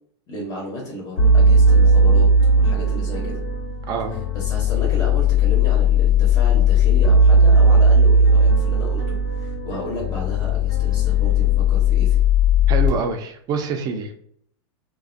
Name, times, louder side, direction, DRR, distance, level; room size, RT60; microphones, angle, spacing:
voice 1, 0.3-2.3 2.5-3.4 4.3-12.2, left 1 dB, 25° left, -2 dB, 0.6 m, -33 dB
sound 1, 1.2-12.9, left 1 dB, 85° left, 0.9 m, -17 dB
voice 2, 3.9-4.2 12.7-14.1, right 5 dB, 25° right, 5 dB, 0.3 m, -26 dB
2.4 x 2.1 x 2.4 m, 0.65 s
supercardioid pair, 135°, 15 cm